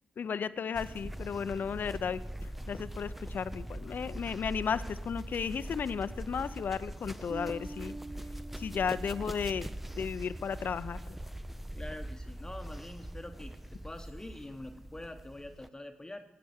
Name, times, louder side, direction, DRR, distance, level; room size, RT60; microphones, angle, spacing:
voice 1, 0.2-2.2 2.7-8.0 8.6-9.7 10.0-11.0, left 6 dB, 65° left, 14 dB, 0.6 m, -34 dB
sound 1, 0.7-15.7, right 1 dB, 5° right, 0.5 m, -42 dB
Bass guitar, 7.3-10.3, right 2 dB, 50° right, 0.8 m, -46 dB
voice 2, 11.7-16.2, left 1 dB, 20° left, 6 dB, 1.0 m, -45 dB
16.0 x 8.7 x 7.1 m, 1.1 s
cardioid pair, 60°, 3 cm